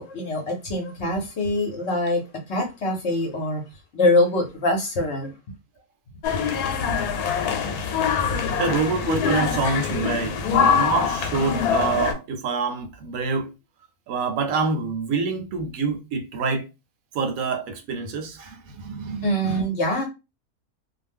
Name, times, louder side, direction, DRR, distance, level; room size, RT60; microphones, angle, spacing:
voice 1, 0.0-3.6 3.9-5.3 19.2-20.0, left 1 dB, 55° left, 0.8 m, -24 dB
sound 1, 6.2-12.1, left 7 dB, 85° left, 1.1 m, -24 dB
voice 2, 8.6-13.5 14.1-16.7 17.1-19.6, right 4 dB, 70° right, 1.0 m, -26 dB
2.5 x 2.1 x 3.4 m
omnidirectional pair, 1.6 m